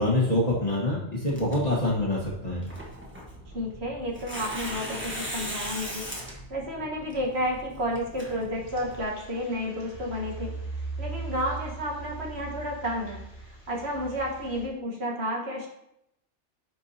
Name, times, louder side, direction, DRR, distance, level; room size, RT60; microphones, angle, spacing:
voice 1, 0.0-2.6, left 1 dB, 35° left, -5 dB, 1.4 m, -25 dB
Tearing, 1.3-9.0, equal, 10° right, 1.2 m, -39 dB
voice 2, 3.5-10.5 11.0-13.2 13.7-15.7, equal, 60° right, -2 dB, 1.7 m, -31 dB
sound 1, 8.5-14.7, right 3 dB, 65° left, 2.5 m, -39 dB
9.5 x 4.7 x 2.8 m, 0.80 s
omnidirectional pair, 1.3 m